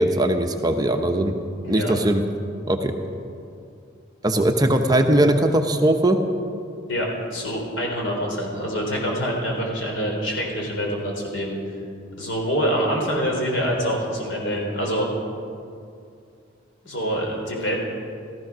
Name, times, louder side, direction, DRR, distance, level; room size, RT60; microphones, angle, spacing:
voice 1, 0.0-1.3 1.7-2.2 2.7-2.9 4.2-6.2, right 1 dB, 20° right, 5 dB, 0.8 m, -20 dB
voice 2, 6.9-11.6 12.2-15.1 16.8-17.7, equal, 80° left, 0 dB, 4.1 m, -25 dB
15.5 x 14.0 x 6.2 m, 2.4 s
head